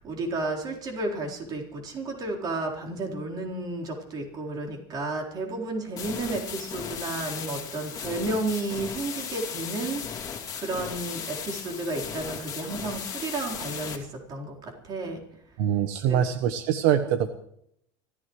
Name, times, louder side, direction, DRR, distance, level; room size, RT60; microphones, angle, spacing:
voice 1, 0.0-15.2 16.1-16.2, right 2 dB, 35° right, 0 dB, 4.1 m, -32 dB
sound 1, 6.0-14.0, left 7 dB, 30° left, 2.6 m, -36 dB
voice 2, 15.6-17.3, right 9 dB, 75° right, 9 dB, 1.0 m, -24 dB
25.5 x 15.0 x 3.2 m, 0.72 s
cardioid pair, 140°, 11 cm